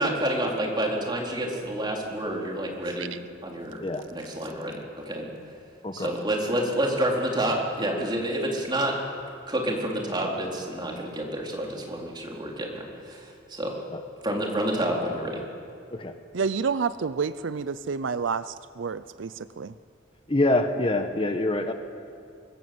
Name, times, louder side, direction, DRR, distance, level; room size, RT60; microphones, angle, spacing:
voice 1, 0.0-3.2 3.4-3.8 4.1-5.3 5.9-9.0 9.5-13.8 14.2-15.4, right 1 dB, 25° right, -1 dB, 4.0 m, -28 dB
voice 2, 16.3-18.4 18.8-19.3 19.6-19.7, right 5 dB, 70° right, 15 dB, 0.5 m, -28 dB
voice 3, 20.3-21.7, left 2 dB, 25° left, 7 dB, 1.1 m, -25 dB
25.5 x 20.5 x 7.9 m, 2.4 s
head